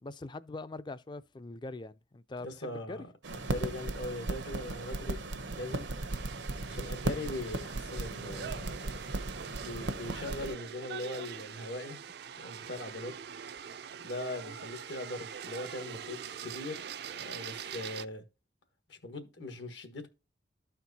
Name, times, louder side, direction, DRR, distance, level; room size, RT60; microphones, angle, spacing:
voice 1, 0.0-3.0, left 2 dB, 25° left, 0.4 m, -43 dB
voice 2, 2.4-3.0 3.3-5.2 5.5-5.9 6.6-8.9 9.6-12.0 12.4-13.1 14.0-18.2 18.9-20.1, left 1 dB, 80° left, 1.4 m, -40 dB
sound 1, 3.2-10.6, right 2 dB, 80° right, 0.8 m, -36 dB
sound 2, 6.1-18.1, right 8 dB, 60° right, 0.4 m, -44 dB
13.0 x 4.4 x 2.7 m
head